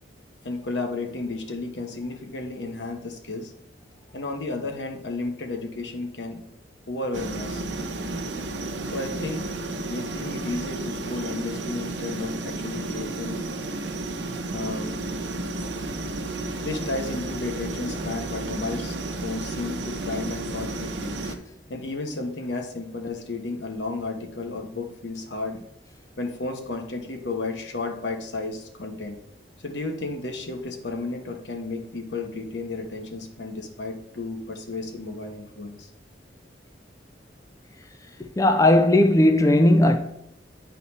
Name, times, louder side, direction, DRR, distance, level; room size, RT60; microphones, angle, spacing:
voice 1, 0.4-3.5 4.1-6.4 6.9-7.6 8.9-9.5 9.9-13.4 14.5-15.0 16.6-21.2 21.7-25.6 26.2-29.2 29.6-35.9, left 3 dB, 80° left, 1.2 m, -33 dB
sound 1, 7.1-21.4, right 2 dB, 80° right, 0.8 m, -32 dB
voice 2, 38.4-40.0, left 1 dB, 20° left, 0.4 m, -17 dB
9.5 x 4.1 x 4.1 m
head